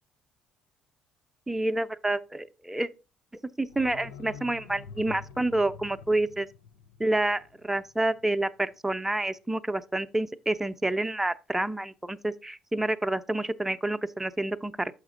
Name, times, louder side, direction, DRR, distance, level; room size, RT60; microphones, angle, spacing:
voice 1, 1.5-2.9 3.6-6.5 7.0-14.9, right 2 dB, 10° right, 0.5 m, -28 dB
sound 1, 3.7-8.4 8.7-8.8, left 6 dB, 90° left, 0.4 m, -47 dB
6.4 x 5.9 x 3.7 m
hypercardioid pair, 60°, 3 cm